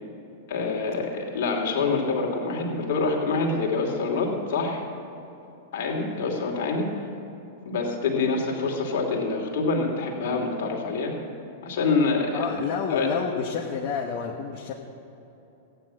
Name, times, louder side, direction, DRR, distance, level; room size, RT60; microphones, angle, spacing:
voice 1, 0.5-4.8 5.7-6.9 7.6-11.2 11.6-12.6 12.9-13.1, left 3 dB, 65° left, 1 dB, 2.6 m, -26 dB
voice 2, 12.3-14.7, left 7 dB, 45° left, -1 dB, 1.2 m, -29 dB
15.0 x 9.7 x 6.3 m, 2.9 s
hypercardioid pair, 110°, 0 cm